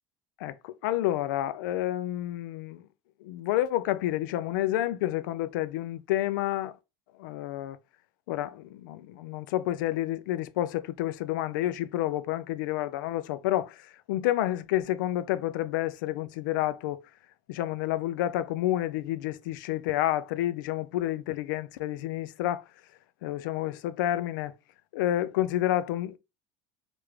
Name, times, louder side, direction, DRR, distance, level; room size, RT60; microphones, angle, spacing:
voice 1, 0.4-2.8 3.2-6.8 7.2-7.8 8.3-17.0 17.5-22.6 23.2-24.5 24.9-26.2, left 14 dB, 85° left, 0.4 m, -29 dB
3.2 x 2.5 x 3.3 m
supercardioid pair, 130°, 10 cm